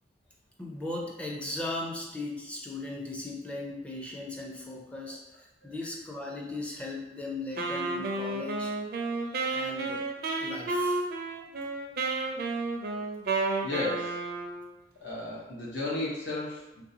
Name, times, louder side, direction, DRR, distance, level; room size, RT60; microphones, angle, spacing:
voice 1, 0.6-8.7 9.5-10.1 10.4-11.0, left 2 dB, 5° left, -2 dB, 0.5 m, -37 dB
Wind instrument woodwind instrument, 7.6-14.7, right 3 dB, 60° right, 0.4 m, -31 dB
voice 2, 13.6-14.2 15.0-16.8, left 2 dB, 75° left, -5 dB, 0.9 m, -34 dB
3.2 x 2.6 x 2.7 m, 0.93 s
head